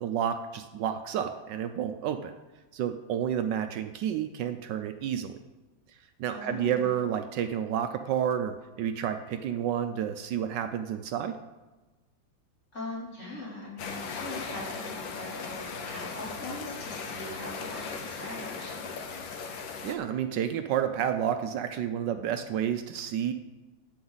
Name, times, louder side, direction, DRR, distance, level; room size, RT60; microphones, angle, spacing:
voice 1, 0.0-2.3 2.7-5.3 6.2-11.3 19.8-23.3, right 9 dB, 75° right, 8 dB, 1.2 m, -30 dB
voice 2, 6.3-6.9 12.7-19.0, left 1 dB, 40° left, -6 dB, 3.5 m, -41 dB
sound 1, 13.8-20.0, left 5 dB, 90° left, 1.8 m, -38 dB
16.5 x 7.1 x 4.0 m, 1.2 s
omnidirectional pair, 2.1 m